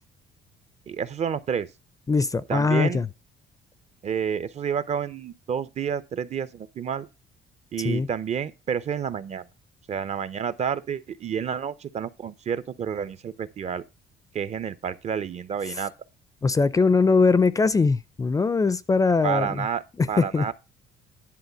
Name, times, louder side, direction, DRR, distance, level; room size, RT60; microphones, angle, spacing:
voice 1, 0.9-1.7 2.5-3.0 4.0-7.1 7.7-9.5 9.9-13.8 14.3-15.9 19.2-19.8 20.1-20.5, right 7 dB, 40° right, 0.6 m, -29 dB
voice 2, 2.1-3.1 7.8-8.1 16.4-19.6 20.2-20.5, left 4 dB, 20° left, 0.5 m, -21 dB
10.5 x 3.8 x 6.8 m
cardioid pair, 110°, 17 cm